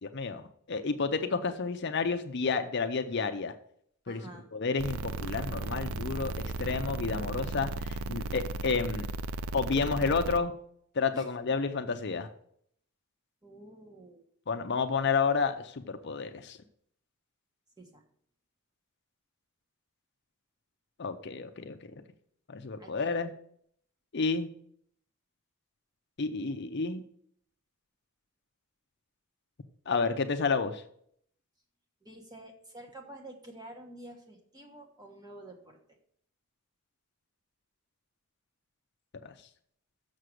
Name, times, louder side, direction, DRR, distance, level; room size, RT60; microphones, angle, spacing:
voice 1, 0.0-3.5 4.1-4.2 4.5-6.3 6.6-9.1 9.5-10.5 10.9-12.3 14.5-16.6 21.0-21.8 22.5-23.3 24.1-24.5 26.2-27.0 29.9-30.8 39.2-39.3, left 4 dB, 50° left, 7 dB, 0.6 m, -30 dB
voice 2, 4.1-4.5 11.1-11.3 13.4-14.2 17.8-18.0 22.8-23.3 32.0-36.0, right 1 dB, 20° right, 2 dB, 1.3 m, -49 dB
sound 1, 4.8-10.4, right 3 dB, 75° right, 0.5 m, -35 dB
6.7 x 6.4 x 6.3 m, 0.66 s
head